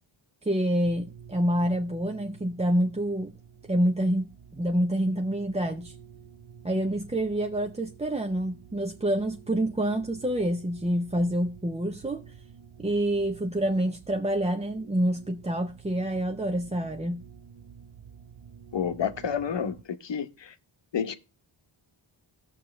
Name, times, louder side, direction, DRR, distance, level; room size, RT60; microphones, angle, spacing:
voice 1, 0.4-3.3 3.7-5.9 6.6-12.2 12.8-17.2, right 1 dB, 15° right, 0.6 m, -27 dB
sound 1, 0.8-19.8, right 7 dB, 80° right, 1.0 m, -50 dB
voice 2, 18.7-20.5 20.9-21.2, left 7 dB, 60° left, 0.9 m, -30 dB
18.5 x 7.0 x 3.2 m
wide cardioid pair, 85°, 50 cm